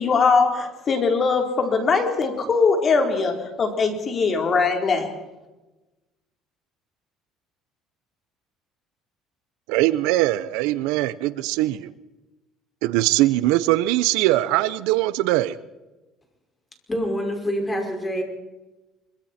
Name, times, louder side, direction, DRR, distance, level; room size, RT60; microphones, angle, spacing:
voice 1, 0.0-5.1, left 4 dB, 35° left, 4 dB, 3.8 m, -21 dB
voice 2, 9.7-11.9 12.8-15.6, right 16 dB, 85° right, 16 dB, 0.8 m, -21 dB
voice 3, 16.9-18.2, equal, 15° left, 3 dB, 5.5 m, -26 dB
24.5 x 24.0 x 4.4 m, 1.1 s
cardioid pair, 120°, 0 cm